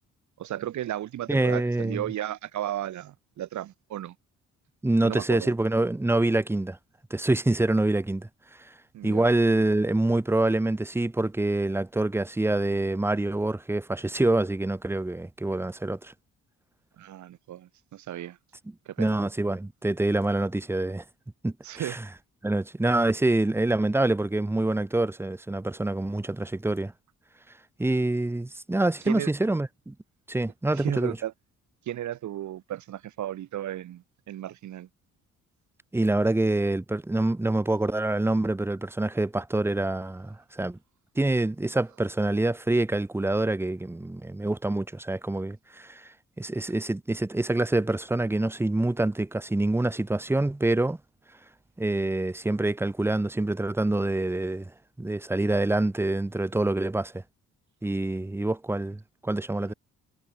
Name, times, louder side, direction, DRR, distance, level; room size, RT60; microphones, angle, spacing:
voice 1, 0.4-4.2 5.0-5.5 8.9-9.3 17.0-18.4 18.9-19.2 21.6-22.0 29.1-29.3 30.7-31.3 31.9-34.9 59.6-59.7, right 12 dB, 70° right, 2.0 m, -34 dB
voice 2, 1.3-2.0 4.8-6.8 7.1-8.3 8.6-8.7 9.0-16.1 19.0-21.0 21.4-22.0 22.4-26.9 27.8-29.9 30.3-31.2 35.9-40.8 41.2-51.0 51.8-54.7 55.0-57.2 57.8-59.7, right 2 dB, 10° right, 0.9 m, -26 dB
cardioid pair, 90°, 30 cm